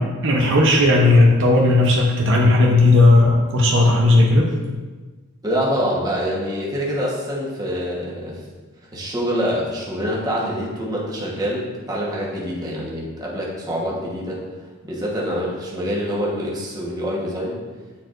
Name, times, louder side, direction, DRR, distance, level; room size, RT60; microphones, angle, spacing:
voice 1, 0.0-4.5, left 2 dB, 60° right, -1 dB, 0.7 m, -15 dB
voice 2, 5.4-8.4 8.9-14.4 14.8-17.6, equal, 20° right, -4 dB, 1.1 m, -25 dB
8.5 x 4.4 x 2.5 m, 1.3 s
head